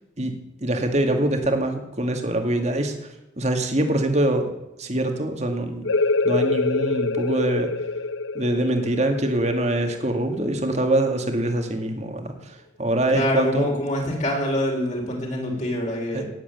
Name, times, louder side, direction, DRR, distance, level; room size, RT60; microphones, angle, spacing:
voice 1, 0.6-3.1 3.4-4.5 4.8-5.8 6.2-7.7 8.3-13.7 16.1-16.2, right 1 dB, 35° right, 5 dB, 2.1 m, -24 dB
sound 1, 5.8-11.2, left 3 dB, 70° left, 0.7 m, -26 dB
voice 2, 13.1-16.3, left 1 dB, 35° left, 0 dB, 4.1 m, -25 dB
17.5 x 8.1 x 9.4 m, 0.89 s
head